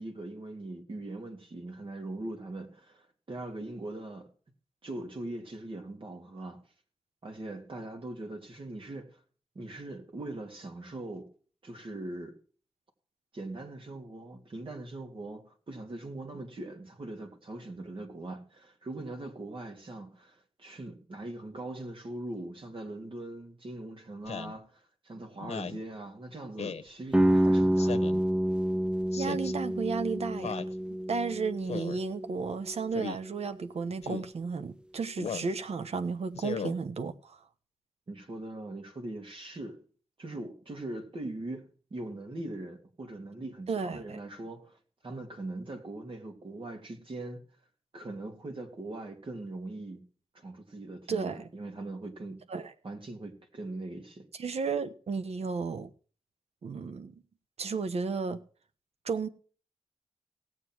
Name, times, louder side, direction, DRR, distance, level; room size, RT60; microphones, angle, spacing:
voice 1, 0.0-4.3 4.8-6.6 7.2-9.2 9.5-11.3 11.6-12.4 13.3-28.1 38.1-39.8 40.2-47.5 47.9-50.1 50.3-52.5 52.8-54.3, right 2 dB, 55° right, 2.9 m, -41 dB
Speech synthesizer, 24.3-24.6 25.4-25.8 26.6-26.9 27.8-28.2 29.1-29.5 30.4-30.7 31.7-32.0 32.9-33.2 34.0-34.3 35.2-35.5 36.3-36.7, left 6 dB, 85° left, 0.9 m, -37 dB
sound 1, 27.1-32.9, right 1 dB, 10° right, 0.4 m, -28 dB
voice 2, 29.2-30.6 31.1-37.4 43.7-44.2 51.1-51.5 52.5-52.7 54.4-55.9 56.6-57.1 57.6-58.4 59.0-59.3, right 5 dB, 75° right, 1.1 m, -33 dB
17.5 x 7.6 x 4.7 m
cardioid pair, 65°, 11 cm